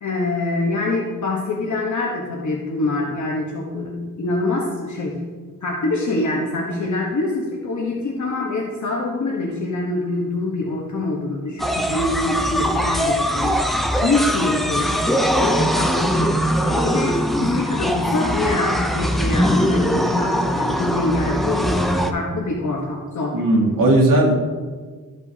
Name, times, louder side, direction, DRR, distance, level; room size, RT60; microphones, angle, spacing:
voice 1, 0.0-5.1 5.6-13.6 14.0-15.0 15.4-23.4, left 2 dB, 65° left, -2 dB, 1.2 m, -25 dB
sound 1, 11.6-22.1, equal, ahead, 0.5 m, -21 dB
voice 2, 23.3-24.3, right 1 dB, 90° right, -1 dB, 1.7 m, -16 dB
13.5 x 5.3 x 2.8 m, 1.4 s
wide cardioid pair, 120°, 32 cm